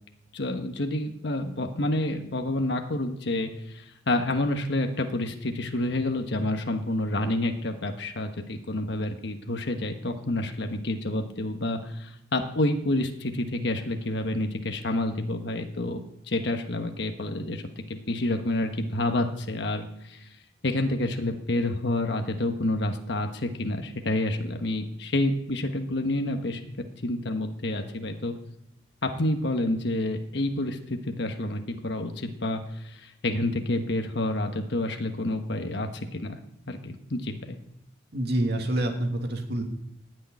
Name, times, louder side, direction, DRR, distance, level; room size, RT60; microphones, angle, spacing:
voice 1, 0.3-17.6 18.1-20.3 20.6-26.6 27.0-28.3 29.0-36.4 36.7-37.6, left 1 dB, 65° left, 4 dB, 1.2 m, -29 dB
voice 2, 38.1-39.6, right 1 dB, 60° right, 3 dB, 2.3 m, -27 dB
14.5 x 6.6 x 9.6 m, 0.81 s
head